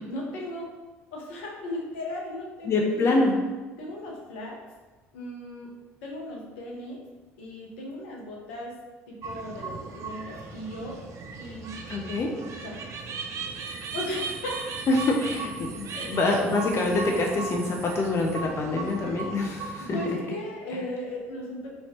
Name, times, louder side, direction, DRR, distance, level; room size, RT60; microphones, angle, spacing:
voice 1, 0.1-0.7 1.1-3.2 3.8-4.6 5.1-5.7 6.0-7.0 7.4-8.7 9.1-10.9 11.4-11.7 12.6-13.0 13.9-14.6 15.9-16.2 19.8-21.7, left 1 dB, 75° left, -2 dB, 0.7 m, -36 dB
voice 2, 2.6-3.4 11.9-12.3 14.9-20.0, left 2 dB, 40° left, 0 dB, 0.5 m, -25 dB
sound 1, 9.2-20.1, right 4 dB, 50° right, 0.4 m, -37 dB
3.0 x 2.7 x 2.9 m, 1.2 s
hypercardioid pair, 60°, 7 cm